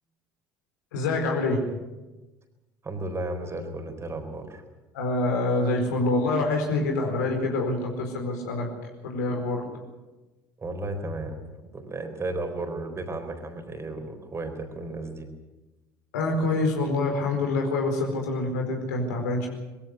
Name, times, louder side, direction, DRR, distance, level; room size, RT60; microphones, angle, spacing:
voice 1, 0.9-1.6 4.9-8.7 9.0-9.6 16.1-19.5, left 2 dB, 70° left, 3 dB, 4.5 m, -26 dB
voice 2, 2.8-4.6 10.6-11.4 11.7-15.3, right 2 dB, 25° right, 6 dB, 4.0 m, -34 dB
21.5 x 15.5 x 9.5 m, 1.1 s
figure-of-eight pair, 60°, 10 cm